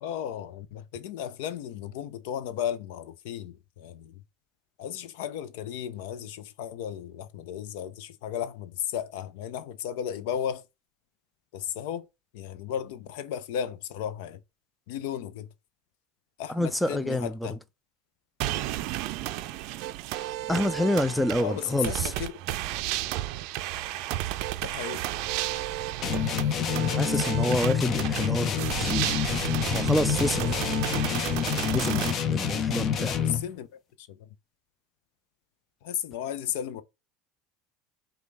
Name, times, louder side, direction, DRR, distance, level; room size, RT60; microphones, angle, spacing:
voice 1, 0.0-4.2 4.8-10.6 11.5-12.1 12.3-14.4 14.9-15.5 16.4-17.6 21.4-22.3 24.6-25.1 33.2-33.7 34.0-34.3 35.8-36.8, left 9 dB, 75° left, 0.5 m, -34 dB
voice 2, 16.5-17.6 20.5-22.1 26.9-29.1 29.7-30.4 31.7-33.2, left 1 dB, 5° left, 0.4 m, -27 dB
sound 1, 18.4-32.1, right 14 dB, 65° right, 0.4 m, -32 dB
sound 2, 26.0-33.5, left 8 dB, 40° left, 0.8 m, -28 dB
5.1 x 2.3 x 3.3 m
supercardioid pair, 105°, 0 cm